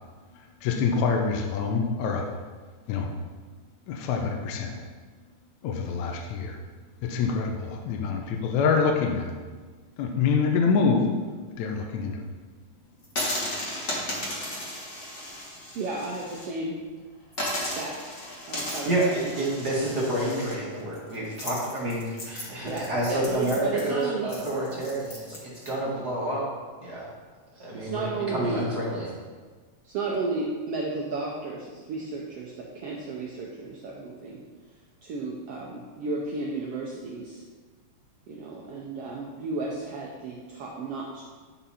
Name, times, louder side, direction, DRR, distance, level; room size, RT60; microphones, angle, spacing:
voice 1, 0.6-2.3 2.9-3.1 3.9-4.7 5.6-6.6 7.0-9.4 10.0-11.1 11.6-12.3, left 5 dB, 70° left, 2 dB, 1.9 m, -25 dB
sound 1, 13.0-16.5 16.8-16.9 17.3-25.7, left 1 dB, 35° left, 1.3 m, -35 dB
voice 2, 15.7-16.8 17.6-18.2 18.5-19.3 22.6-24.3 27.7-28.6 29.8-34.4 35.0-37.4 38.3-41.2, right 3 dB, 85° right, -2 dB, 1.3 m, -33 dB
voice 3, 18.8-26.5 26.8-27.1 27.5-29.1, right 1 dB, 40° right, -6 dB, 1.6 m, -29 dB
10.0 x 5.6 x 4.2 m, 1.4 s
omnidirectional pair, 3.8 m